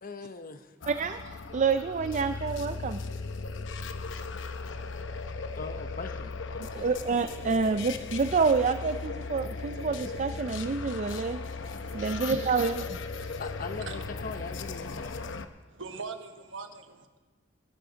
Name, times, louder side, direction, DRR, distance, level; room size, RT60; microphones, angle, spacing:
voice 1, 0.0-0.7 5.5-6.9 13.4-15.3, left 4 dB, 50° left, 9 dB, 0.8 m, -41 dB
sound 1, 0.8-15.5, left 4 dB, 75° left, 0.7 m, -37 dB
voice 2, 0.9-3.0 6.7-11.4 11.9-12.8, right 5 dB, 40° right, 9 dB, 0.4 m, -28 dB
voice 3, 11.8-12.5 13.7-14.0 15.7-17.2, right 4 dB, 80° right, 7 dB, 1.2 m, -42 dB
20.5 x 12.0 x 3.9 m, 1.3 s
head